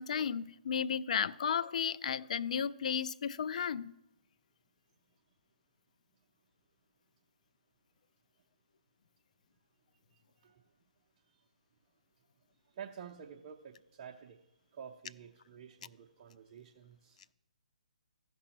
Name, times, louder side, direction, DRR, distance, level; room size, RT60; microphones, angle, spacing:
voice 1, 0.0-4.0, left 7 dB, 55° left, 0.4 m, -34 dB
voice 2, 12.8-14.4 14.7-17.2, right 7 dB, 35° right, 0.7 m, -50 dB
15.5 x 6.0 x 2.9 m
figure-of-eight pair, 140°, 5 cm